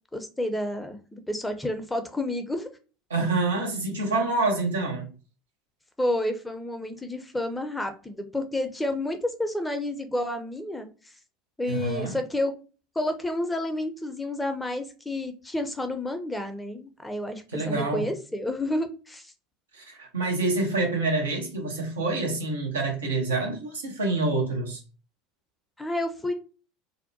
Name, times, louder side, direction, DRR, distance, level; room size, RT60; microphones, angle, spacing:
voice 1, 0.1-2.7 6.0-11.1 11.6-12.5 13.0-19.3 25.8-26.3, left 1 dB, 10° left, 0.5 m, -30 dB
voice 2, 3.1-5.1 11.7-12.2 17.5-18.0 19.7-24.8, right 3 dB, 80° right, 0.8 m, -27 dB
2.6 x 2.1 x 2.6 m
figure-of-eight pair, 75°, 0 cm